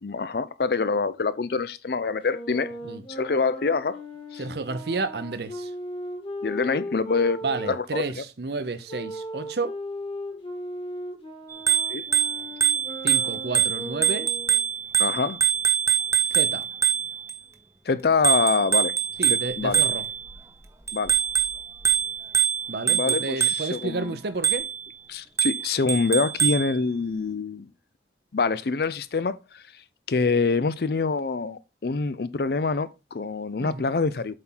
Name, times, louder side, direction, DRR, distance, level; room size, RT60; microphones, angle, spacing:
voice 1, 0.0-2.7 3.1-4.0 4.3-4.4 6.4-7.4 7.7-8.0 11.9-12.1 15.0-15.4 17.9-18.9 19.3-19.8 20.9-21.1 22.8-24.1 25.1-27.7 28.3-29.6 30.1-34.4, left 4 dB, 55° left, 0.5 m, -25 dB
Wind instrument woodwind instrument, 2.2-8.1 8.9-14.6, equal, 30° left, 1.6 m, -37 dB
voice 2, 4.4-5.7 7.4-9.8 13.0-14.3 16.3-16.7 19.2-20.1 22.7-24.7 33.6-33.9, right 3 dB, 65° right, 0.8 m, -31 dB
Bicycle bell, 11.5-17.3 18.2-20.3 20.9-23.8 24.4-24.9 25.4-26.7, right 9 dB, 15° right, 0.8 m, -24 dB
7.6 x 4.4 x 3.8 m
head